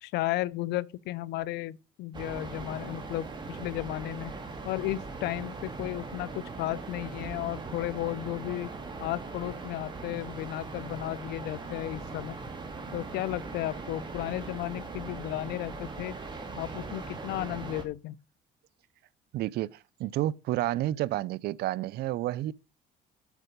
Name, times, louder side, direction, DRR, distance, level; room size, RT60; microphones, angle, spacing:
voice 1, 0.0-4.4 4.6-8.7 9.0-12.4 12.9-16.2 16.6-18.2, left 16 dB, 80° left, 0.5 m, -34 dB
sound 1, 2.1-17.8, right 3 dB, 25° right, 2.1 m, -40 dB
voice 2, 19.3-22.5, right 14 dB, 70° right, 0.5 m, -30 dB
8.1 x 5.6 x 5.2 m
cardioid pair, 110°, 17 cm